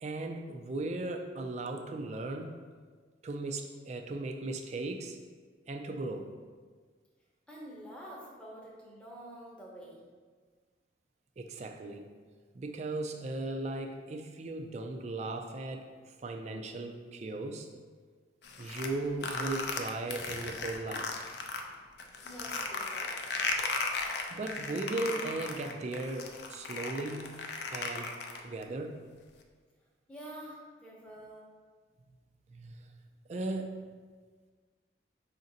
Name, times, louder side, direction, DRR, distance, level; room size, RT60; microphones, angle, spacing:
voice 1, 0.0-2.6 3.2-5.2 5.7-6.3 11.4-12.1 12.5-15.9 16.2-17.7 18.6-21.1 24.3-29.0 32.5-32.8 33.3-33.7, right 2 dB, 35° right, 4 dB, 0.3 m, -37 dB
voice 2, 7.5-10.0 22.2-23.2 30.1-31.5, equal, 5° left, -4 dB, 0.8 m, -47 dB
sound 1, 18.4-21.6 22.0-28.6, left 4 dB, 60° left, 0.4 m, -36 dB
5.1 x 2.5 x 4.0 m, 1.5 s
head